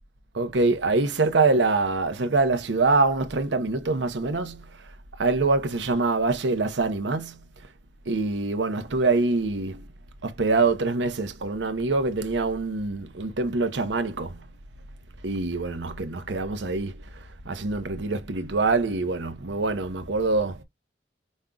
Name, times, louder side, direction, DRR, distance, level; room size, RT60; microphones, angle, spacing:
voice 1, 0.3-4.7 5.2-7.4 8.1-9.8 10.2-14.4 15.2-17.0 17.4-20.6, right 3 dB, 75° right, 0.8 m, -24 dB
5.3 x 3.7 x 2.3 m
head